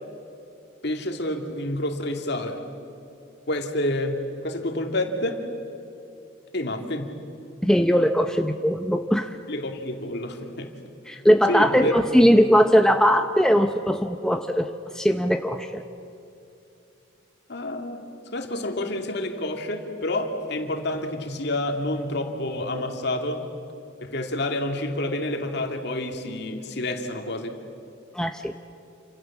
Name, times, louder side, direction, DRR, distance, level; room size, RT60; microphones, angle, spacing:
voice 1, 0.8-2.6 3.5-5.4 6.5-7.1 9.5-10.7 11.5-11.9 12.2-12.4 17.5-18.0 18.3-23.5 24.0-27.6, left 1 dB, 55° left, 4 dB, 2.6 m, -28 dB
voice 2, 7.6-9.4 11.1-14.7 14.9-15.8 28.1-28.5, equal, 5° left, 5 dB, 0.7 m, -20 dB
28.5 x 26.5 x 7.4 m, 2.7 s
head